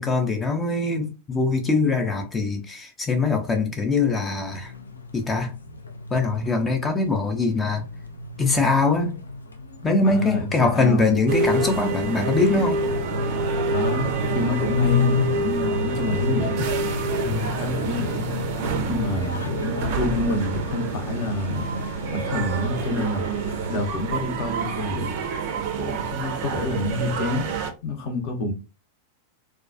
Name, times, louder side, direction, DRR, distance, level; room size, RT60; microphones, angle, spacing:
voice 1, 0.0-4.7 5.1-5.6 6.1-7.8 8.4-9.1 9.8-12.8 17.2-17.5, left 3 dB, 20° left, 0.5 m, -22 dB
sound 1, 4.5-23.8, left 4 dB, 80° left, 0.3 m, -31 dB
voice 2, 10.1-11.1 13.7-16.6 17.5-18.3 18.9-21.7 22.1-23.3 23.7-25.2 25.8-27.4 27.8-28.5, left 2 dB, 45° left, 0.7 m, -28 dB
sound 2, 11.3-27.7, right 4 dB, 45° right, 0.4 m, -28 dB
2.2 x 2.2 x 2.5 m
figure-of-eight pair, 90°, 0 cm